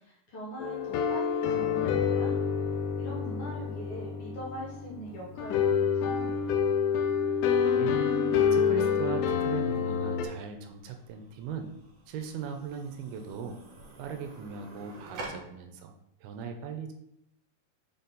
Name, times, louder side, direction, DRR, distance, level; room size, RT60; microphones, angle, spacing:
voice 1, 0.0-2.4 3.0-6.4, equal, 50° left, -4 dB, 1.8 m, -42 dB
sound 1, 0.6-10.3, left 7 dB, 80° left, 2.6 m, -27 dB
voice 2, 7.5-8.0 8.5-11.7 12.1-13.6 14.0-15.9 16.2-16.9, right 6 dB, 80° right, 5 dB, 2.4 m, -38 dB
sound 2, 10.0-15.3, right 2 dB, 55° right, 1.9 m, -49 dB
6.7 x 4.2 x 4.0 m, 0.77 s
omnidirectional pair, 4.7 m